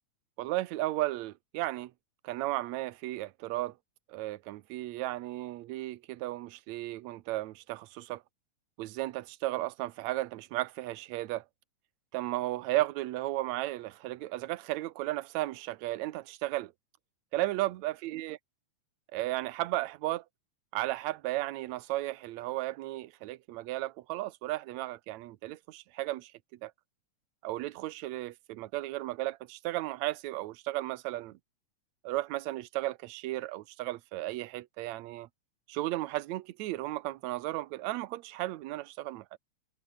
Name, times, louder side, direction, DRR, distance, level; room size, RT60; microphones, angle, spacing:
voice 1, 0.4-1.9 2.2-3.7 4.1-8.2 8.8-11.4 12.1-16.7 17.3-18.4 19.1-20.2 20.7-26.3 26.6-26.7 27.4-31.4 32.0-35.3 35.7-39.4, right 17 dB, 70° right, 2.1 m, -34 dB
omnidirectional pair, 3.5 m